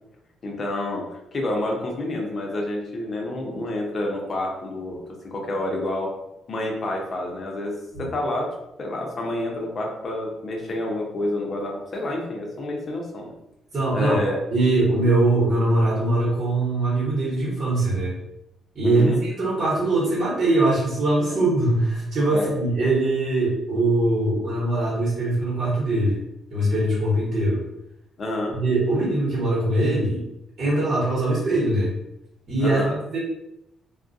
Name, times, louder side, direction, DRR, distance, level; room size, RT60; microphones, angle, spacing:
voice 1, 0.4-5.0 5.3-6.1 6.5-7.7 8.0-8.5 8.8-13.3 13.9-14.4 18.8-19.2 21.3-21.4 22.3-22.5 28.2-28.6 28.9-29.0 32.6-32.9, left 1 dB, 45° left, 0 dB, 0.7 m, -28 dB
voice 2, 13.7-14.2 14.5-18.1 18.7-26.2 26.5-27.6 28.5-30.2 30.6-31.9 32.5-33.2, right 2 dB, 50° right, -7 dB, 1.1 m, -22 dB
2.3 x 2.1 x 2.6 m, 0.86 s
cardioid pair, 90°, 0 cm